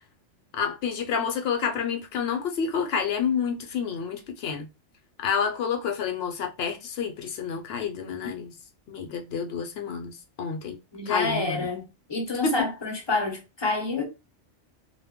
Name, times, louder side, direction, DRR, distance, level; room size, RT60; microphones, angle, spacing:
voice 1, 0.5-4.7 5.2-8.5 8.9-10.8 11.1-11.7 12.4-12.7, left 6 dB, 65° left, 0.8 m, -29 dB
voice 2, 10.9-11.8 12.1-14.1, left 3 dB, 30° left, 0.5 m, -28 dB
2.2 x 2.1 x 3.5 m
omnidirectional pair, 1.2 m